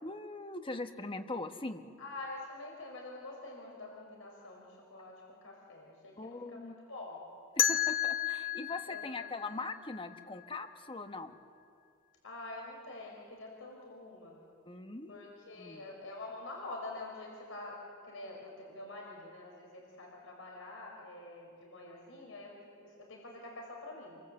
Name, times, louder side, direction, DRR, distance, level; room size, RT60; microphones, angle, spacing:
voice 1, 0.0-1.9 6.2-6.7 7.6-11.4 14.7-15.8, left 2 dB, 25° left, 7 dB, 1.3 m, -41 dB
voice 2, 2.0-7.2 8.9-9.3 12.2-14.4 15.1-22.5 22.8-24.2, left 2 dB, 75° left, 0 dB, 4.9 m, -46 dB
sound 1, 7.6-10.5, left 9 dB, 45° left, 1.1 m, -33 dB
29.0 x 24.0 x 7.9 m, 2.3 s
head